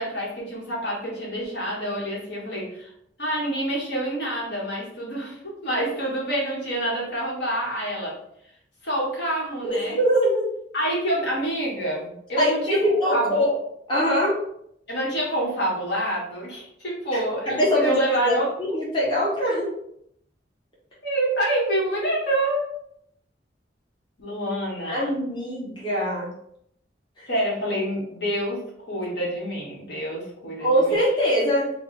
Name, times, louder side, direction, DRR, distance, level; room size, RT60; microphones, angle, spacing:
voice 1, 0.0-2.9 3.2-8.2 8.8-10.0 10.7-12.8 13.1-13.5 14.9-18.5 21.0-22.7 24.2-25.1 27.3-31.0, right 1 dB, 65° left, -4 dB, 1.4 m, -27 dB
voice 2, 9.6-10.4 12.4-13.5 13.9-14.4 17.1-19.7 24.9-26.3 27.2-27.3 30.6-31.7, equal, 30° left, -6 dB, 1.0 m, -23 dB
3.4 x 2.3 x 4.1 m, 0.72 s
head